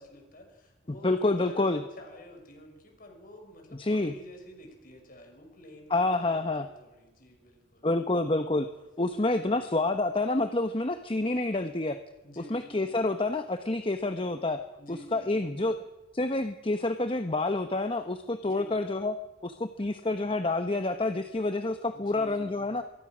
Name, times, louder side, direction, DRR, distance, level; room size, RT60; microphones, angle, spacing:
voice 1, 0.0-7.9 9.2-9.7 12.2-13.1 14.8-15.6 18.4-18.8 21.9-22.8, equal, 50° left, 3 dB, 6.0 m, -51 dB
voice 2, 1.0-1.8 3.8-4.1 5.9-6.7 7.8-8.7 9.0-12.0 12.4-14.6 14.9-15.8 16.1-19.1 19.4-22.8, left 2 dB, 30° left, 9 dB, 0.9 m, -28 dB
24.5 x 22.0 x 6.2 m, 1.1 s
head